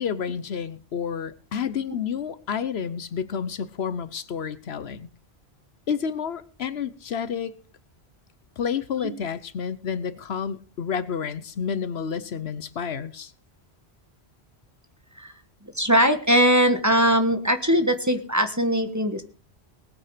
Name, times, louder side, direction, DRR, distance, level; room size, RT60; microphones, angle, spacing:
voice 1, 0.0-5.1 5.9-7.6 8.6-13.3, left 7 dB, 75° left, 1.1 m, -30 dB
voice 2, 15.7-19.2, equal, 15° right, 1.4 m, -21 dB
19.5 x 8.8 x 5.0 m
omnidirectional pair, 1.1 m